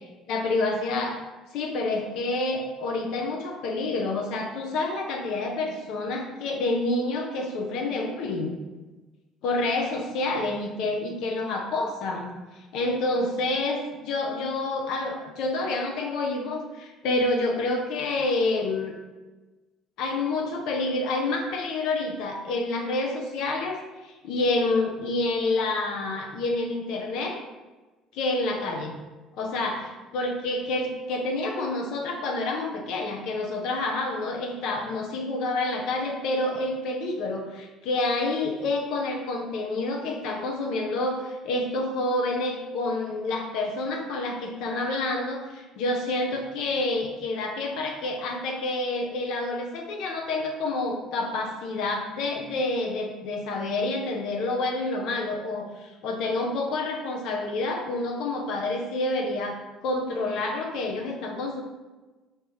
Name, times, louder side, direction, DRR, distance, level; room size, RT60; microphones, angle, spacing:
voice 1, 0.3-1.2 1.5-8.6 9.4-18.9 20.0-27.4 28.1-29.0 29.4-61.6, left 2 dB, 70° left, 1 dB, 0.5 m, -28 dB
3.4 x 2.8 x 3.0 m, 1.2 s
hypercardioid pair, 60°, 0 cm